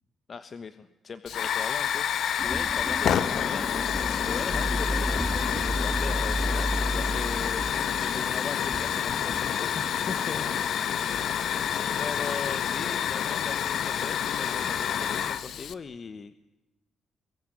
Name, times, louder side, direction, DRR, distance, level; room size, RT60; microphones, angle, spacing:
voice 1, 0.3-7.7 7.9-10.4 12.0-16.4, left 5 dB, 40° left, 12 dB, 1.2 m, -39 dB
Hiss / Fire, 1.3-15.7, left 9 dB, 70° left, 1.4 m, -28 dB
sound 1, 2.4-12.4, equal, ahead, 2.3 m, -33 dB
24.5 x 22.0 x 10.0 m, 0.97 s
cardioid pair, 90°, 0 cm